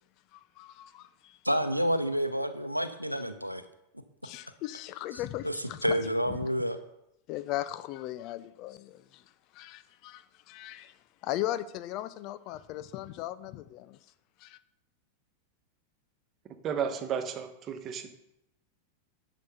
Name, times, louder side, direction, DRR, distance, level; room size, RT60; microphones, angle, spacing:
voice 1, 0.3-1.4 4.2-6.0 6.4-6.5 7.3-9.2 9.5-11.0 11.2-14.0 14.4-14.6, left 14 dB, 40° left, 0.5 m, -38 dB
voice 2, 1.4-3.6 5.4-5.6 5.8-6.8, equal, 90° right, 0.7 m, -29 dB
voice 3, 16.6-18.1, right 7 dB, 30° right, 1.3 m, -33 dB
10.5 x 6.2 x 5.6 m
figure-of-eight pair, 90°, 0 cm